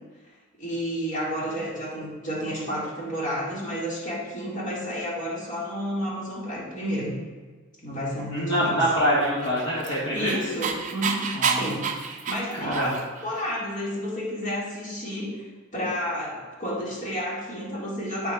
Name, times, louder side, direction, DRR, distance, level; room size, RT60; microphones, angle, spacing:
voice 1, 0.6-7.2 7.8-8.8 10.1-15.5 15.7-18.3, equal, 35° left, -6 dB, 1.9 m, -31 dB
voice 2, 8.3-10.4 11.4-11.7 12.6-12.9, equal, 55° left, -7 dB, 1.5 m, -25 dB
Dog, 9.4-13.2, right 6 dB, 35° right, 0.5 m, -29 dB
8.2 x 6.9 x 2.3 m, 1.4 s
head